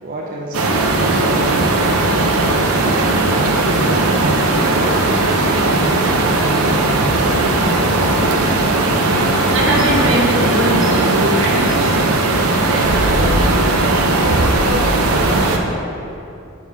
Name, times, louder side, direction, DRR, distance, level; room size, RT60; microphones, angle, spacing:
voice 1, 0.0-2.6 3.1-5.1, right 1 dB, 40° right, -2 dB, 0.6 m, -31 dB
sound 1, 0.5-15.6, right 2 dB, 85° right, 0.7 m, -16 dB
voice 2, 9.5-12.0 12.3-15.6, right 1 dB, 65° right, -3 dB, 1.4 m, -23 dB
7.5 x 3.7 x 6.1 m, 2.7 s
head